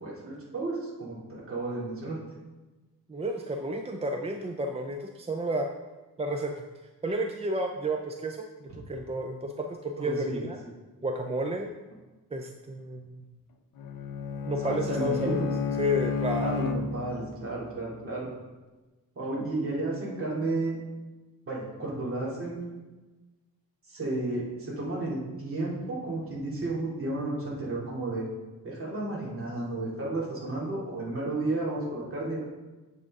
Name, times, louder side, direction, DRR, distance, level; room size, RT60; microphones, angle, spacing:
voice 1, 0.0-2.2 10.0-10.4 14.6-15.5 16.4-18.3 19.2-20.8 21.5-22.7 23.9-28.3 28.6-32.4, right 2 dB, 40° right, -5 dB, 2.5 m, -32 dB
voice 2, 3.1-5.7 6.2-6.6 7.0-10.6 11.0-11.7 12.3-13.3 14.4-15.5 15.8-16.6, right 1 dB, 20° right, 3 dB, 0.4 m, -31 dB
Bowed string instrument, 13.8-17.4, left 5 dB, 70° left, 0.7 m, -31 dB
7.8 x 7.5 x 3.6 m, 1.2 s
wide cardioid pair, 150°, 35 cm